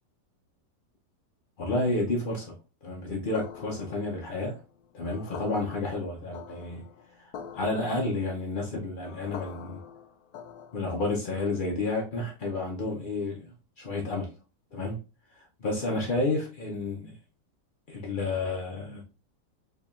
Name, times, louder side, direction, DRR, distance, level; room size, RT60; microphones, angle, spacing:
voice 1, 1.6-2.5 2.8-4.6 4.9-6.8 7.2-9.8 10.7-14.3 14.7-15.0 15.6-17.1 17.9-19.0, left 2 dB, 85° left, 0.4 m, -31 dB
sound 1, 3.3-11.1, left 7 dB, 70° left, 1.0 m, -45 dB
4.6 x 2.9 x 2.4 m
omnidirectional pair, 1.9 m